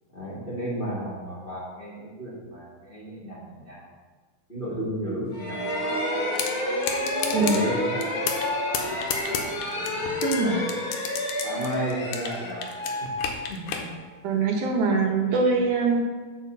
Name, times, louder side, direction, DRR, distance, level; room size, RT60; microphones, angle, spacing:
voice 1, 0.1-3.9 4.5-6.0 7.3-8.3 8.7-9.0 9.7-10.7 11.2-12.6 13.5-13.8, equal, 20° left, -8 dB, 1.5 m, -34 dB
sound 1, 5.3-14.0, left 1 dB, 45° left, 2.0 m, -29 dB
sound 2, 6.4-6.5 6.8-7.6 8.0-8.5 8.7-10.4 10.7-12.4 12.6-13.8, left 7 dB, 85° left, 2.6 m, -30 dB
voice 2, 10.2-10.6 14.2-16.0, right 4 dB, 70° right, 1 dB, 2.3 m, -23 dB
8.5 x 4.4 x 6.7 m, 1.4 s
omnidirectional pair, 4.0 m